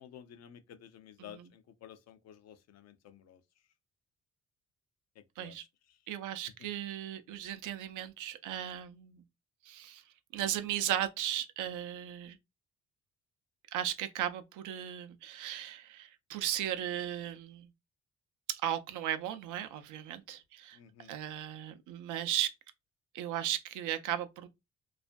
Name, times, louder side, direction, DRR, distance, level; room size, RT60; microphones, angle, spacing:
voice 1, 0.0-3.4 5.2-6.0 6.6-6.7 20.7-21.1, left 9 dB, 60° left, 0.5 m, -53 dB
voice 2, 6.1-9.2 9.7-10.0 10.3-12.4 13.7-17.7 18.5-20.8 21.1-22.5 23.1-24.5, right 11 dB, 85° right, 0.5 m, -36 dB
2.4 x 2.2 x 2.5 m
cardioid pair, 90°, 30 cm